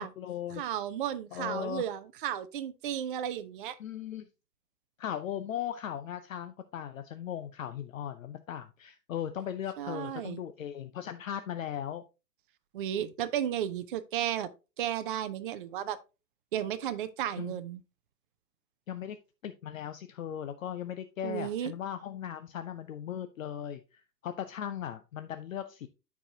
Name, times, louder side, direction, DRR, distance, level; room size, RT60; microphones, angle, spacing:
voice 1, 0.0-0.6 1.3-1.9 3.8-4.3 5.0-12.0 13.0-13.1 17.4-17.6 18.9-19.2 19.4-25.9, left 9 dB, 55° left, 0.7 m, -38 dB
voice 2, 0.5-3.8 9.8-10.4 12.7-14.5 14.8-16.0 16.5-17.8 21.2-21.7, right 10 dB, 35° right, 0.5 m, -34 dB
12.5 x 4.8 x 2.8 m
figure-of-eight pair, 120°, 48 cm